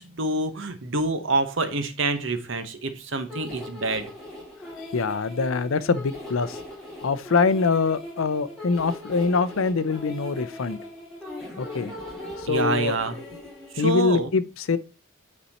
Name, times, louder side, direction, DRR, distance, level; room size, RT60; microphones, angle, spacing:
voice 1, 0.0-4.0 12.5-13.1 13.7-14.3, right 2 dB, 60° right, 1.0 m, -26 dB
sound 1, 3.3-13.8, left 1 dB, ahead, 2.9 m, -39 dB
voice 2, 4.9-6.6 7.0-10.8 11.6-11.9 12.4-13.5 13.8-14.8, left 4 dB, 70° left, 0.5 m, -24 dB
8.7 x 4.2 x 4.2 m
head